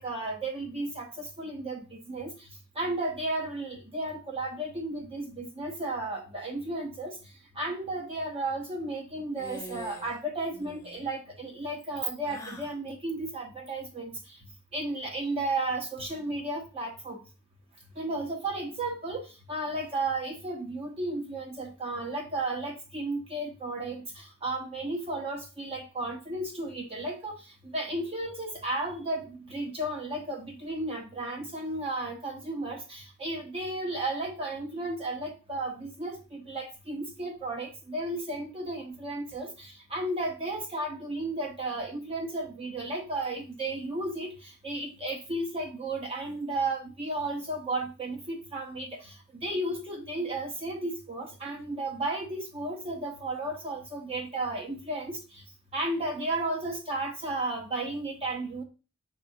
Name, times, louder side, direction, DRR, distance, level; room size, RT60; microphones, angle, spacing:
voice 1, 0.0-2.3 2.8-7.2 7.6-14.1 14.7-17.2 18.0-19.2 19.5-27.4 27.6-49.1 49.4-55.2 55.7-58.6, right 2 dB, 30° right, 1 dB, 0.7 m, -33 dB
sound 1, 9.3-10.2 10.5-11.0 12.2-12.8, left 1 dB, 15° left, 0.7 m, -44 dB
5.9 x 3.3 x 2.7 m, 0.33 s
head